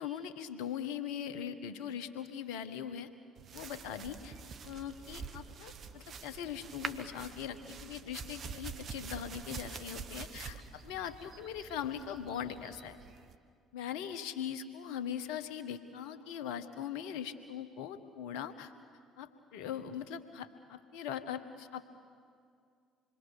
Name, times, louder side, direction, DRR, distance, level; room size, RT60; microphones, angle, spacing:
voice 1, 0.0-3.1 3.5-4.4 4.6-13.0 13.7-18.7 19.2-21.8, left 9 dB, 70° left, 10 dB, 1.3 m, -41 dB
sound 1, 3.4-13.3, right 6 dB, 50° right, 1.2 m, -46 dB
27.0 x 22.5 x 6.7 m, 2.2 s
hypercardioid pair, 55°, 0 cm